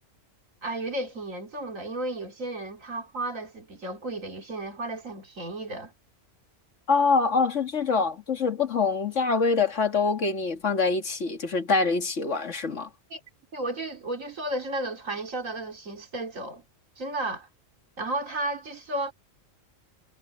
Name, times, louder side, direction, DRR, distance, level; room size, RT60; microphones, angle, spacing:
voice 1, 0.6-5.9 13.1-13.2 13.5-16.6 17.0-17.5 18.0-19.1, right 2 dB, 85° right, 3.1 m, -33 dB
voice 2, 6.9-12.9, left 4 dB, 65° left, 2.2 m, -25 dB
omnidirectional pair, 1.3 m